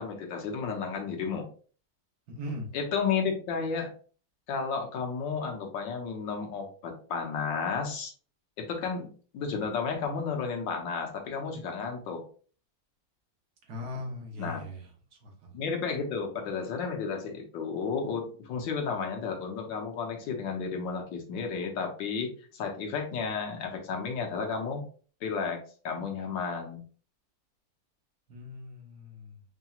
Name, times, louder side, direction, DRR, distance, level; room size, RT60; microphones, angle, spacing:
voice 1, 0.0-1.5 2.7-3.9 4.5-8.1 8.6-9.1 9.3-12.2 14.4-14.6 15.5-24.8 25.2-25.6 25.8-26.8, left 5 dB, 90° left, 2 dB, 1.6 m, -32 dB
voice 2, 2.3-2.7 13.7-14.9 15.2-15.5 28.3-29.4, left 1 dB, 65° right, 0 dB, 1.6 m, -39 dB
5.3 x 2.9 x 2.3 m, 0.41 s
omnidirectional pair, 2.0 m